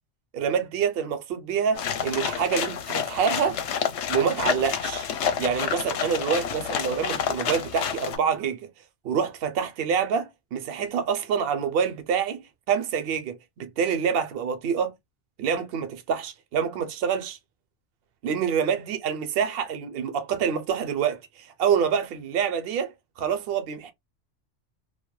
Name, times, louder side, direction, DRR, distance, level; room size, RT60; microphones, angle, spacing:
voice 1, 0.3-3.6 4.1-5.0 5.4-8.7 9.0-14.9 15.4-17.4 18.2-23.9, right 7 dB, 60° right, 0.7 m, -26 dB
sound 1, 1.7-8.2, left 8 dB, 75° left, 0.8 m, -29 dB
2.2 x 2.1 x 3.0 m
omnidirectional pair, 1.2 m